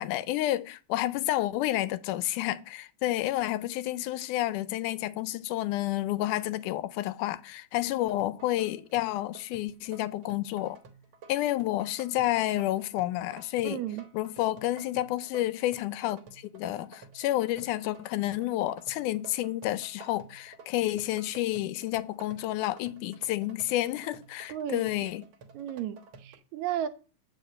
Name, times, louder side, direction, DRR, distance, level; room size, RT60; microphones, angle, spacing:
voice 1, 0.0-10.8 11.3-13.8 14.1-25.2, left 15 dB, 85° left, 2.1 m, -30 dB
sound 1, 8.0-26.4, right 4 dB, 60° right, 1.4 m, -52 dB
voice 2, 13.6-14.0 24.5-24.8 25.5-26.9, right 10 dB, 80° right, 1.8 m, -33 dB
8.5 x 4.9 x 7.7 m
omnidirectional pair, 3.6 m